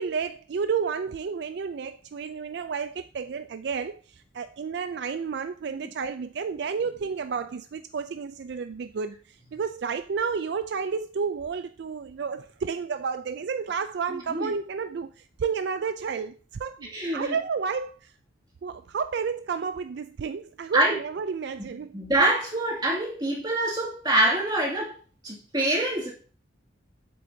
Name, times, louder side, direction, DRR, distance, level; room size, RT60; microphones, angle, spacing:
voice 1, 0.0-4.0 4.3-18.1 18.6-21.9, right 5 dB, 60° right, 0.3 m, -31 dB
voice 2, 14.1-14.5 16.9-17.3 20.7-21.0 21.6-24.9 25.2-26.1, right 1 dB, 20° right, 2.3 m, -25 dB
7.9 x 7.6 x 2.7 m
head